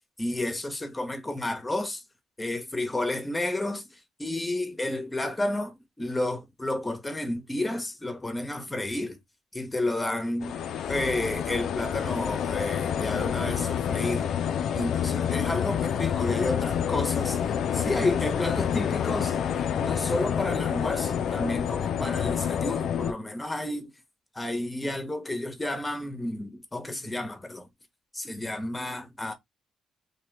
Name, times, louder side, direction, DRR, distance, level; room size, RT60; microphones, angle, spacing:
voice 1, 0.2-2.0 2.4-3.8 4.2-9.2 9.5-10.5 10.9-14.3 14.7-23.9 24.3-27.7 28.1-29.3, left 1 dB, 15° left, 0.9 m, -31 dB
sound 1, 10.4-23.1, left 8 dB, 70° left, 0.4 m, -28 dB
2.9 x 2.8 x 3.2 m
cardioid pair, 90°, 0 cm